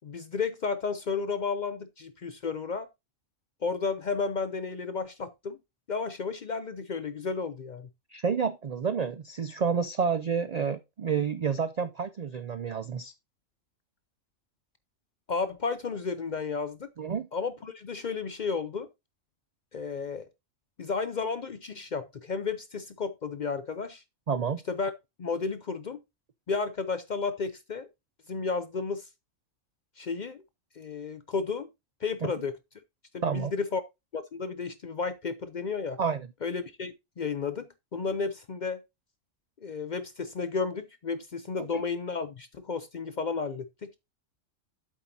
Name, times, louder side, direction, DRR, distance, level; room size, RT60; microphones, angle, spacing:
voice 1, 0.0-2.9 3.6-5.6 5.9-7.9 15.3-16.9 17.3-18.9 19.7-20.3 20.8-24.0 24.7-24.9 25.2-26.0 26.5-27.9 28.3-29.1 30.0-30.4 30.7-31.7 32.0-32.5 33.1-33.8 34.1-36.0 36.4-38.8 39.6-43.9, left 4 dB, 50° left, 0.5 m, -32 dB
voice 2, 8.1-13.1 17.0-17.3 24.3-24.6 32.2-32.3 33.2-33.5 36.0-36.3 41.6-41.8, right 6 dB, 65° right, 0.4 m, -29 dB
8.1 x 7.5 x 2.7 m
omnidirectional pair, 1.3 m